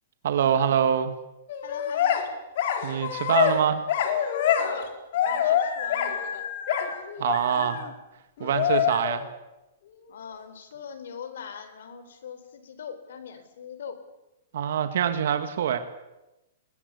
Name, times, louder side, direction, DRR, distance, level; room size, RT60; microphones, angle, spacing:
voice 1, 0.2-1.1 2.8-3.8 7.2-7.8 8.4-9.2 14.5-15.8, right 9 dB, 70° right, 8 dB, 2.0 m, -24 dB
sound 1, 1.5-2.3 2.6-3.6 3.9-4.9 5.1-7.9 8.4-9.3, left 9 dB, 60° left, 3.9 m, -26 dB
voice 2, 1.6-2.4 4.5-6.5 10.1-14.0, left 7 dB, 75° left, 11 dB, 4.1 m, -41 dB
21.0 x 21.0 x 8.4 m, 0.99 s
hypercardioid pair, 145°, 0 cm